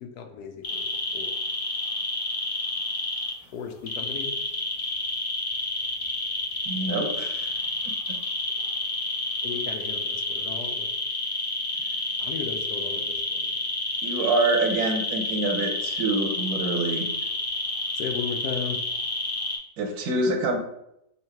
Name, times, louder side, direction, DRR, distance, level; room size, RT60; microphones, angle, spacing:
voice 1, 0.0-1.3 3.5-4.3 9.4-10.9 12.2-13.5 17.9-18.8, left 6 dB, 80° left, 4 dB, 1.2 m, -35 dB
sound 1, 0.6-3.3 3.9-19.6, left 2 dB, 45° left, 0.5 m, -29 dB
voice 2, 6.7-7.5 14.0-17.1 19.8-20.6, right 2 dB, 75° right, 4 dB, 1.2 m, -26 dB
3.7 x 2.8 x 4.5 m, 0.79 s
omnidirectional pair, 1.7 m